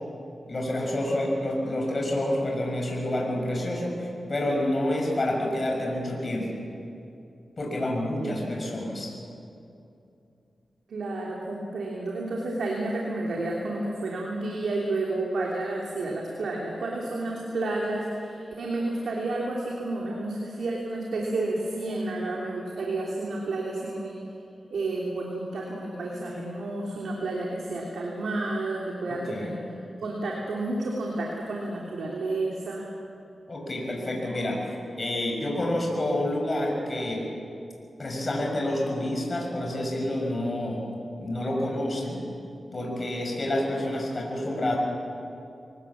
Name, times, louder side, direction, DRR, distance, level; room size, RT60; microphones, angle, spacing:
voice 1, 0.5-6.5 7.6-9.1 26.2-26.3 29.3-29.5 33.5-37.2 38.0-40.8 41.2-42.2 42.7-44.8, left 1 dB, 40° left, -1 dB, 6.3 m, -28 dB
voice 2, 8.2-8.6 10.9-24.2 24.7-29.7 30.0-32.9, right 2 dB, 85° right, -2 dB, 3.0 m, -31 dB
25.0 x 19.0 x 7.4 m, 2.7 s
cardioid pair, 70°, 0 cm